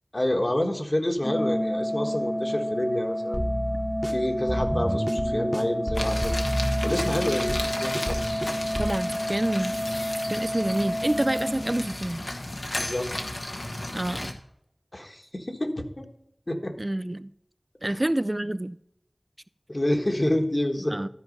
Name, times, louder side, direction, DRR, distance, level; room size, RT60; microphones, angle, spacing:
voice 1, 0.1-3.4 4.0-6.4 6.8-8.4 12.8-13.1 14.9-16.0 16.5-16.7 17.8-18.0 19.7-21.0, left 1 dB, 45° left, 3 dB, 1.5 m, -28 dB
Organ, 1.2-12.2, equal, 30° left, 0.7 m, -30 dB
sound 1, 3.3-9.0, equal, 10° right, 1.0 m, -30 dB
sound 2, 5.9-14.3, left 1 dB, 80° left, 1.3 m, -34 dB
voice 2, 8.8-9.8 10.3-12.2 13.9-14.4 16.8-17.3 17.8-18.8 20.9-21.1, right 1 dB, 35° right, 13 dB, 0.3 m, -28 dB
13.0 x 4.7 x 5.3 m, 0.76 s
wide cardioid pair, 40°, 0 cm